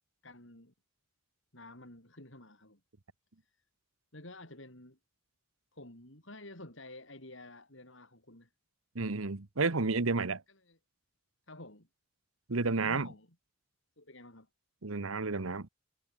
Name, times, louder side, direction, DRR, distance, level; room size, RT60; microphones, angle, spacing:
voice 1, 0.2-0.7 1.5-2.8 3.4-3.6 4.1-5.0 5.7-8.5 10.5-10.8 11.5-11.9 12.8-13.3 14.0-14.5, left 2 dB, 60° left, 6.9 m, -51 dB
voice 2, 8.9-10.4 12.5-13.1 14.8-15.7, right 3 dB, 80° right, 1.2 m, -31 dB
head